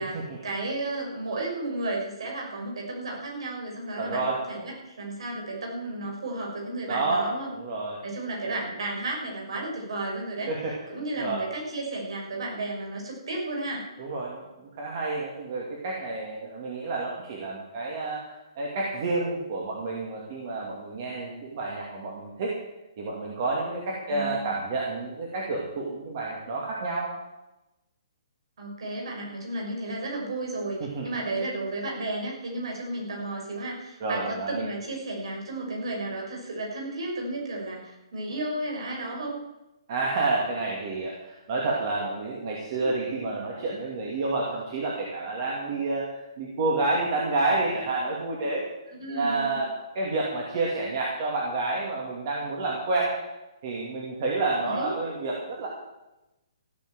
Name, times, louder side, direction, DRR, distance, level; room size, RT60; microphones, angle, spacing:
voice 1, 0.0-7.5 8.0-10.5 10.9-13.8 24.1-24.5 28.6-30.8 31.0-39.4 48.9-49.6 54.6-55.0, right 2 dB, 65° right, -1 dB, 6.1 m, -33 dB
voice 2, 4.0-4.4 6.9-8.0 8.4-8.5 10.5-10.7 11.2-11.4 14.0-22.5 23.0-27.1 30.8-31.1 34.0-34.6 39.9-48.6 49.1-53.2 53.6-55.7, right 3 dB, 35° right, -3 dB, 2.7 m, -29 dB
15.5 x 7.8 x 7.8 m, 0.98 s
hypercardioid pair, 170°, 3 cm